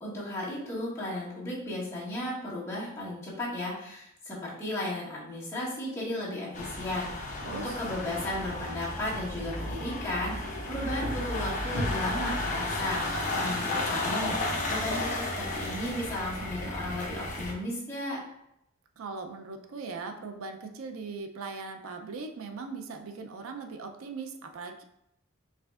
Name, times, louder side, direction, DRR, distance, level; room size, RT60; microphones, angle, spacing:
voice 1, 0.0-18.2, left 1 dB, 15° left, -8 dB, 1.5 m, -35 dB
sound 1, 6.5-17.5, left 2 dB, 40° left, 0.9 m, -33 dB
voice 2, 7.4-7.8 19.0-24.8, right 4 dB, 80° right, 5 dB, 0.4 m, -39 dB
4.8 x 3.4 x 2.4 m, 0.77 s
head